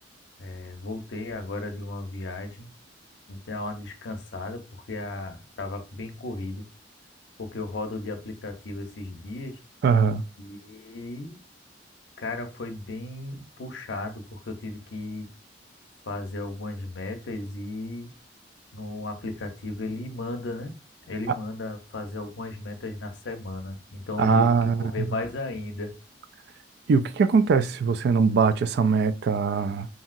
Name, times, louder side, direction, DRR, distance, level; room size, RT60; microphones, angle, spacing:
voice 1, 0.4-2.7 3.3-6.7 7.4-9.6 10.4-11.4 12.2-15.3 16.0-18.1 18.7-20.7 21.0-25.9, left 2 dB, 75° left, 0.6 m, -35 dB
voice 2, 9.8-10.2 24.2-24.8 26.9-29.9, right 5 dB, 60° right, 0.3 m, -21 dB
2.9 x 2.6 x 2.5 m
head